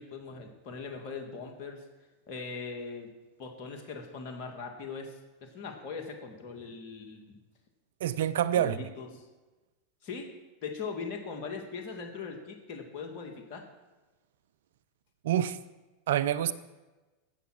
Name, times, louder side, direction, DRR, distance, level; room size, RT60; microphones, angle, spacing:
voice 1, 0.0-1.8 2.3-3.1 3.4-7.4 8.5-9.3 10.0-10.3 10.6-13.7, left 5 dB, 55° left, 2.1 m, -40 dB
voice 2, 8.0-8.8 15.2-15.6 16.1-16.5, right 11 dB, 75° right, 0.6 m, -26 dB
16.0 x 5.9 x 6.0 m
hypercardioid pair, 95°, 0 cm